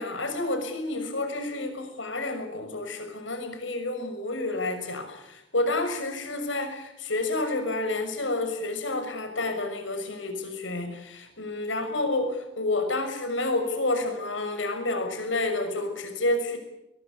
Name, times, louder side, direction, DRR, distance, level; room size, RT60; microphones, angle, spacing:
voice 1, 0.0-16.6, left 2 dB, 85° left, 6 dB, 6.3 m, -29 dB
21.5 x 21.0 x 8.5 m, 0.86 s
head